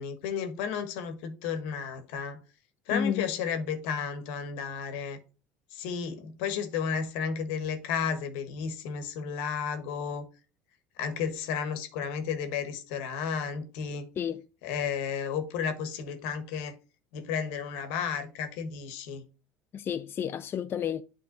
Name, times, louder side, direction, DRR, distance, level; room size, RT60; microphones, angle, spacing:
voice 1, 0.0-2.4 2.9-5.2 5.7-10.2 11.0-14.1 14.6-16.8 17.1-19.2, left 6 dB, 80° left, 1.4 m, -33 dB
voice 2, 2.9-3.2 14.2-14.4 19.7-21.0, left 8 dB, 40° left, 0.4 m, -31 dB
9.7 x 3.7 x 3.9 m
supercardioid pair, 100°, 6 cm